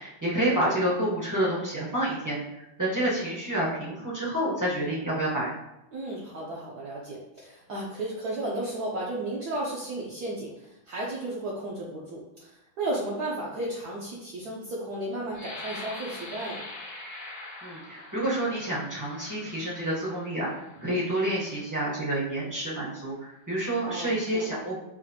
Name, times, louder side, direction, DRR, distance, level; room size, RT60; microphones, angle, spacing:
voice 1, 0.0-2.4 2.8-5.5 17.6-20.5 20.8-24.8, right 1 dB, 20° right, -7 dB, 0.5 m, -28 dB
voice 2, 5.9-16.6 23.8-24.5, right 1 dB, 65° right, -5 dB, 1.0 m, -34 dB
sound 1, 15.3-21.0 21.6-21.8 22.3-22.7, left 2 dB, 65° left, 1.3 m, -43 dB
4.9 x 2.5 x 2.7 m, 0.90 s
omnidirectional pair, 2.1 m